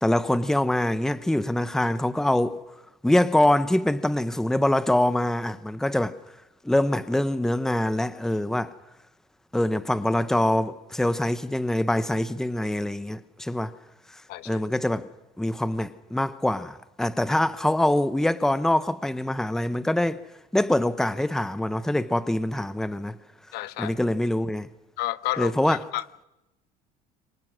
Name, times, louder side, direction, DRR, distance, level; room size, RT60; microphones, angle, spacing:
voice 1, 0.0-2.6 3.0-6.2 6.6-8.7 9.5-13.7 14.5-15.1 15.4-20.2 20.5-23.2 23.8-24.7 25.4-25.8, left 1 dB, 5° left, 0.9 m, -24 dB
voice 2, 14.3-14.6 23.5-24.0 25.0-26.2, left 16 dB, 70° left, 0.9 m, -31 dB
27.0 x 24.0 x 6.2 m
cardioid pair, 130°, 18 cm